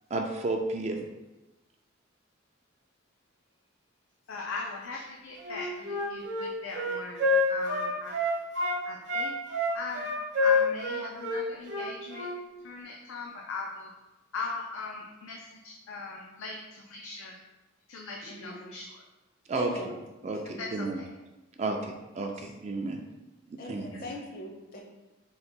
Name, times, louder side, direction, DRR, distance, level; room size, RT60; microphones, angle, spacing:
voice 1, 0.1-1.1 19.5-20.0 20.2-21.0 21.6-23.0 23.5-24.0, right 2 dB, 35° right, 3 dB, 0.3 m, -32 dB
voice 2, 4.3-8.2 8.8-9.3 9.7-10.1 10.4-12.3 12.6-13.9 14.3-17.4 17.9-19.0 20.6-21.1, left 3 dB, 80° left, -1 dB, 0.4 m, -39 dB
Wind instrument woodwind instrument, 5.4-8.8 9.1-12.4, left 2 dB, 60° right, 0.9 m, -28 dB
voice 3, 18.2-18.8 19.5-19.9 20.3-20.7 23.6-24.8, left 2 dB, 45° left, -1 dB, 0.7 m, -41 dB
3.8 x 2.2 x 4.3 m, 1.1 s
head